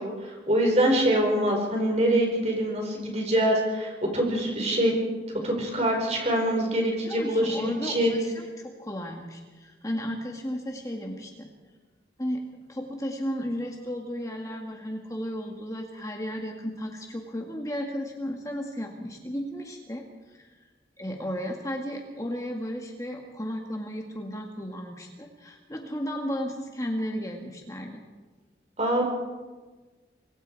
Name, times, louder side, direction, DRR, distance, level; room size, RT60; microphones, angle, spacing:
voice 1, 0.0-4.9 5.4-8.1 28.8-29.1, right 1 dB, 35° right, 1 dB, 4.6 m, -24 dB
voice 2, 7.0-11.5 12.2-12.4 12.7-20.5 21.0-28.0, equal, 20° left, 2 dB, 1.8 m, -34 dB
26.5 x 21.5 x 4.7 m, 1.3 s
head